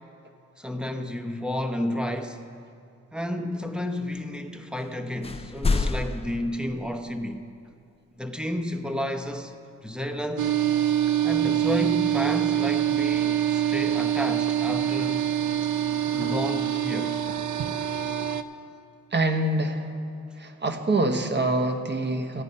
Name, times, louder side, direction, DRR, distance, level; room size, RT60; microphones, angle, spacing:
voice 1, 0.6-2.4 3.1-7.4 8.2-9.5 9.8-10.5 11.2-15.3 15.6-15.7 16.1-17.2, left 1 dB, 5° right, 5 dB, 1.0 m, -31 dB
sound 1, 4.8-4.9 5.2-7.3, left 3 dB, 20° left, 0.4 m, -28 dB
sound 2, 10.4-18.4, right 11 dB, 75° right, 0.6 m, -25 dB
voice 2, 19.1-19.9 20.4-22.4, right 2 dB, 35° right, 6 dB, 1.2 m, -25 dB
14.5 x 8.9 x 5.4 m, 2.4 s
cardioid pair, 85°, 30 cm